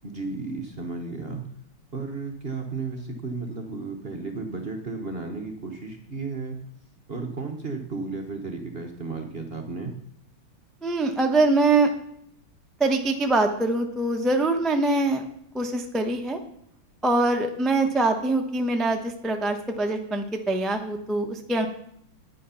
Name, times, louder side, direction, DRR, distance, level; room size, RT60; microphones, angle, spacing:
voice 1, 0.0-1.4 1.9-6.6 7.1-9.9, right 3 dB, 45° right, 4 dB, 0.8 m, -33 dB
voice 2, 10.8-11.9 12.8-15.2 15.5-16.4 17.0-21.7, right 2 dB, ahead, 3 dB, 0.3 m, -23 dB
9.4 x 9.1 x 5.7 m, 0.71 s
omnidirectional pair, 2.4 m